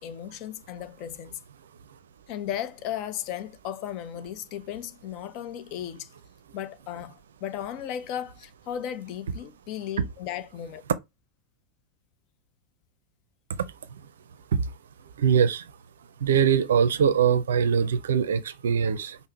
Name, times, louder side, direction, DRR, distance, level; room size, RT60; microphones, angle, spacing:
voice 1, 0.0-1.4 2.3-6.1 6.5-10.8, left 10 dB, 40° left, 0.5 m, -35 dB
voice 2, 15.2-15.6 16.2-19.2, right 7 dB, 65° right, 0.5 m, -22 dB
5.5 x 2.1 x 4.4 m
figure-of-eight pair, 90°, 0 cm